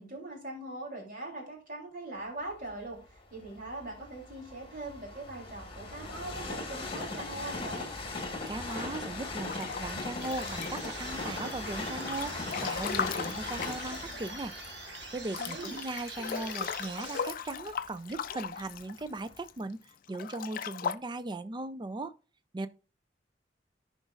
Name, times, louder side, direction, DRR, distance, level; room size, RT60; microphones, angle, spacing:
voice 1, 0.0-7.9 15.4-15.8, right 2 dB, 50° right, 3.3 m, -41 dB
Train, 2.7-18.6 19.2-19.3, left 2 dB, 30° left, 1.8 m, -40 dB
voice 2, 8.5-14.5 15.1-19.8 20.1-22.1 22.5-22.7, right 2 dB, 25° right, 0.4 m, -38 dB
Breathing / Bathtub (filling or washing) / Splash splatter, 9.4-11.0 11.5-14.7 15.0-15.1 15.3-19.5 20.1-21.0, left 7 dB, 50° left, 0.4 m, -37 dB
sound 1, 10.2-17.7, right 4 dB, 65° right, 1.5 m, -45 dB
14.5 x 5.1 x 2.5 m
head